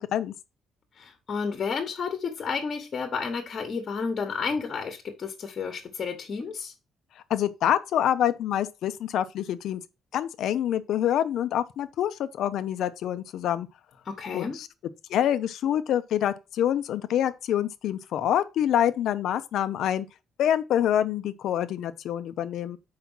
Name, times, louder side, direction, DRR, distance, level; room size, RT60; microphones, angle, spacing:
voice 1, 1.0-6.7 14.0-14.6, left 5 dB, 35° left, 1.1 m, -31 dB
voice 2, 7.3-9.8 10.1-13.7 14.3-14.7 15.1-20.1 20.4-22.8, left 10 dB, 70° left, 0.6 m, -26 dB
5.9 x 4.8 x 5.5 m
cardioid pair, 165°, 0 cm